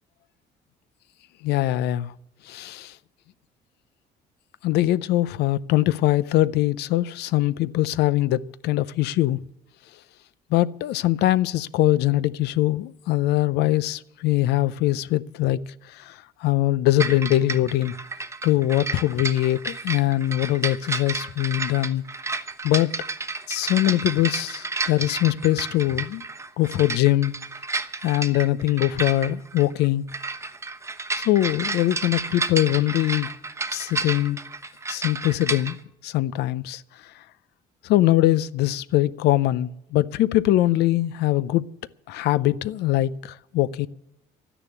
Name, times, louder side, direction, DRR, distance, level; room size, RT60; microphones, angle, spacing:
voice 1, 1.4-2.1 2.5-2.9 4.6-9.4 10.5-15.6 15.9-17.9 18.4-22.0 22.6-22.9 23.5-26.2 26.6-27.3 28.0-30.1 31.2-33.3 33.7-34.4 34.9-35.8 36.0-36.8 37.8-41.7 42.1-43.9, left 15 dB, 80° left, 0.5 m, -22 dB
sound 1, 17.0-35.7, right 3 dB, 15° right, 0.9 m, -31 dB
12.0 x 10.0 x 8.3 m
cardioid pair, 110°, 17 cm